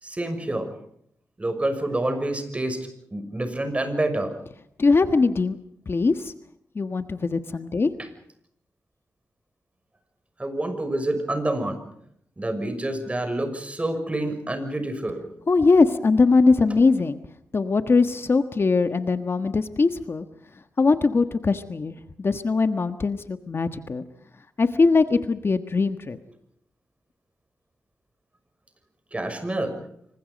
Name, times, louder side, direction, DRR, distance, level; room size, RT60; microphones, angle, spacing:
voice 1, 0.0-0.7 1.4-2.8 3.1-4.3 8.0-8.1 10.4-11.8 12.4-15.2 29.1-29.8, right 1 dB, 20° right, 8 dB, 6.2 m, -27 dB
voice 2, 4.8-5.6 5.9-6.3 6.7-7.9 15.5-17.2 17.5-20.3 20.8-24.0 24.6-26.2, left 4 dB, 45° left, 9 dB, 1.4 m, -21 dB
27.0 x 25.0 x 5.3 m, 0.70 s
cardioid pair, 85°, 6 cm